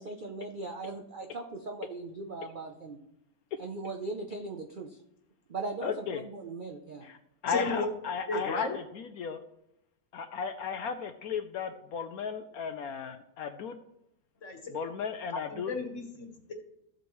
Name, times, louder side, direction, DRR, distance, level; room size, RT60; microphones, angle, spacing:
voice 1, 0.0-3.0 3.6-5.0 5.5-7.1, right 3 dB, 60° right, 3 dB, 0.5 m, -39 dB
voice 2, 5.8-6.2 7.0-7.2 7.4-9.4 10.1-13.8 14.7-15.7, left 6 dB, 70° left, 8 dB, 1.0 m, -35 dB
voice 3, 7.5-7.9 8.3-8.8 14.4-14.6 15.3-16.5, left 3 dB, 50° left, 4 dB, 1.6 m, -34 dB
13.5 x 7.7 x 3.1 m, 0.84 s
omnidirectional pair, 1.8 m